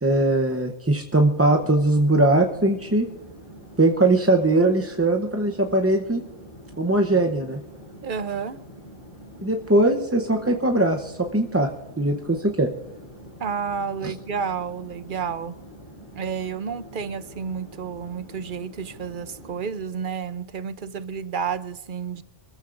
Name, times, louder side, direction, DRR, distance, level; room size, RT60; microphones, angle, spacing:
voice 1, 0.0-3.1 3.8-6.2 6.8-7.6 9.4-11.7 12.0-12.7 14.0-14.1, right 2 dB, 15° right, 0.6 m, -20 dB
Chatter / Fixed-wing aircraft airplane, 1.0-20.0, equal, 30° left, 5.1 m, -45 dB
voice 2, 8.0-8.6 13.4-15.5 16.1-22.2, right 6 dB, 50° right, 0.8 m, -30 dB
26.0 x 14.5 x 2.5 m
omnidirectional pair, 1.2 m